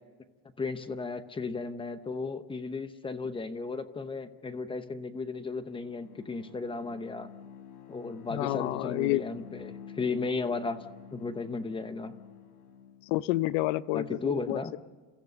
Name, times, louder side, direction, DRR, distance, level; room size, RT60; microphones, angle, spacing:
voice 1, 0.6-7.3 7.9-10.8 11.1-12.1 13.9-14.7, left 4 dB, 15° left, 11 dB, 0.8 m, -35 dB
Bowed string instrument, 5.4-13.1, left 8 dB, 55° left, 4.0 m, -49 dB
voice 2, 8.3-9.2 13.1-14.8, left 17 dB, 85° left, 17 dB, 0.8 m, -29 dB
30.0 x 14.5 x 6.8 m, 1.4 s
cardioid pair, 155°, 36 cm